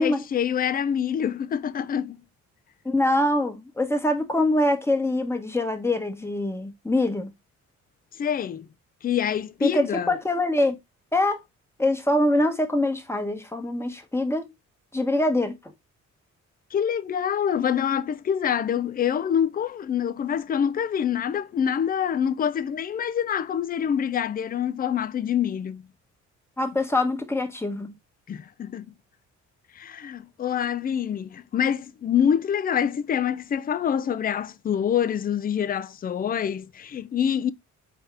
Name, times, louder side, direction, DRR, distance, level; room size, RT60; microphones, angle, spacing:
voice 1, 0.0-2.2 8.2-8.7 9.0-10.1 16.7-25.8 28.3-28.9 29.8-37.5, left 8 dB, 30° left, 0.4 m, -26 dB
voice 2, 2.8-7.3 9.6-10.8 11.1-11.4 11.8-14.5 14.9-15.6 26.6-27.9, left 1 dB, 10° left, 1.1 m, -24 dB
4.2 x 3.6 x 3.3 m
cardioid pair, 90°, 30 cm